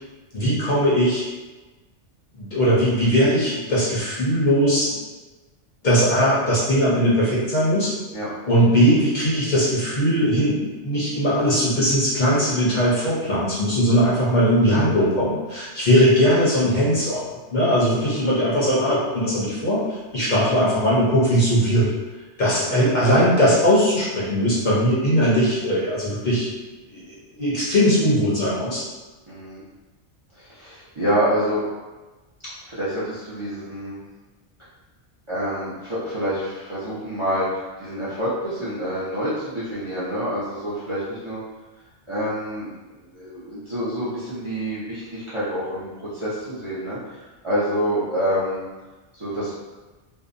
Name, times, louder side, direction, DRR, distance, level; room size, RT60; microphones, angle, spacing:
voice 1, 0.3-1.2 2.3-4.9 5.8-7.9 8.5-17.2 17.5-21.9 22.4-26.5 26.9-27.0 27.4-28.8, equal, 50° left, -9 dB, 0.7 m, -19 dB
voice 2, 29.3-29.6 30.4-31.6 32.7-34.0 35.3-41.4 42.1-42.7 43.1-48.7 49.1-49.6, equal, 35° right, -11 dB, 0.5 m, -27 dB
2.6 x 2.0 x 2.5 m, 1.2 s
omnidirectional pair, 1.2 m